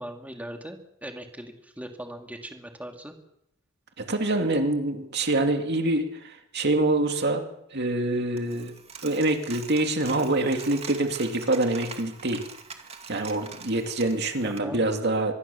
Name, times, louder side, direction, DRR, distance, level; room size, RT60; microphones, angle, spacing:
voice 1, 0.0-3.1 14.4-14.8, right 1 dB, 5° right, 3 dB, 2.6 m, -39 dB
voice 2, 4.0-7.4 7.7-8.7 9.0-12.4 13.1-15.3, right 2 dB, 55° right, 5 dB, 2.6 m, -25 dB
Coin (dropping), 8.4-14.6, right 5 dB, 30° right, 2.4 m, -44 dB
25.0 x 22.5 x 7.1 m, 0.79 s
head